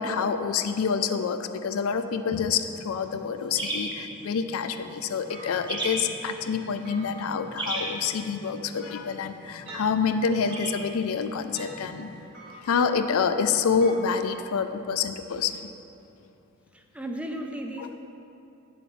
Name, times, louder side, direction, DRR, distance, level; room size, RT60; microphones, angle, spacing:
voice 1, 0.0-12.1 12.6-15.6, left 6 dB, 85° left, 9 dB, 0.4 m, -27 dB
sound 1, 2.9-12.2, right 1 dB, 20° right, 1.0 m, -38 dB
sound 2, 5.3-14.3, equal, 70° right, 1.9 m, -47 dB
voice 2, 16.7-17.9, right 1 dB, 5° right, 3 dB, 0.3 m, -36 dB
9.1 x 7.2 x 3.1 m, 2.8 s
head